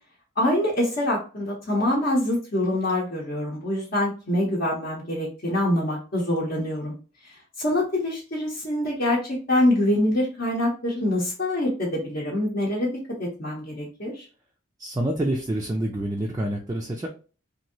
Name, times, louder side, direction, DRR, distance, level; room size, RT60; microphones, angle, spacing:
voice 1, 0.4-6.9 7.6-12.9 13.2-14.3, left 1 dB, 50° left, -5 dB, 0.8 m, -25 dB
voice 2, 14.8-17.1, right 1 dB, 15° right, 0 dB, 0.3 m, -27 dB
3.0 x 2.6 x 2.7 m, 0.36 s
head